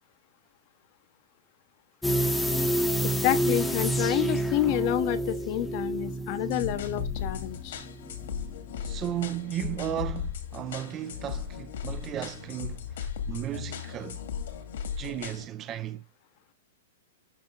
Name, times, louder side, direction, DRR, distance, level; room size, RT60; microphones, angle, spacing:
sound 1, 2.0-8.8 9.1-9.2, right 1 dB, 5° left, 0.8 m, -29 dB
voice 1, 3.0-7.9, left 13 dB, 35° left, 0.8 m, -29 dB
sound 2, 6.5-15.5, left 7 dB, 70° left, 2.0 m, -36 dB
voice 2, 8.8-14.2 15.0-16.0, right 11 dB, 20° right, 0.4 m, -35 dB
11.5 x 4.3 x 3.8 m
hypercardioid pair, 160°, 0 cm